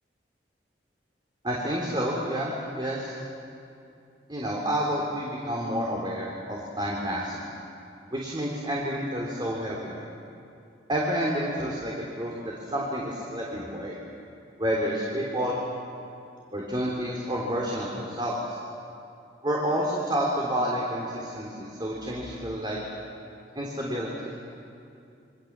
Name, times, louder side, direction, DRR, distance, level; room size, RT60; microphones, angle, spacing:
voice 1, 1.4-3.2 4.3-7.5 8.1-10.0 10.9-14.0 14.6-15.6 16.5-18.6 19.4-22.8 23.6-24.3, equal, 25° right, -3 dB, 3.5 m, -29 dB
29.0 x 24.5 x 7.5 m, 2.6 s
head